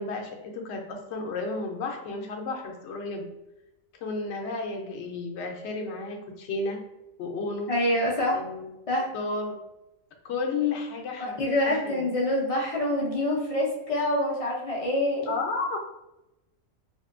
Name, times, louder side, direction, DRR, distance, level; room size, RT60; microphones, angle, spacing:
voice 1, 0.0-3.3 4.0-6.8 7.2-7.7 8.3-8.7 9.1-9.5 10.2-12.1 15.3-15.8, left 3 dB, 65° left, 2 dB, 0.8 m, -32 dB
voice 2, 7.7-8.4 8.9-9.1 11.4-15.3, left 1 dB, 45° left, -4 dB, 0.4 m, -26 dB
3.5 x 2.6 x 2.5 m, 0.93 s
omnidirectional pair, 1.4 m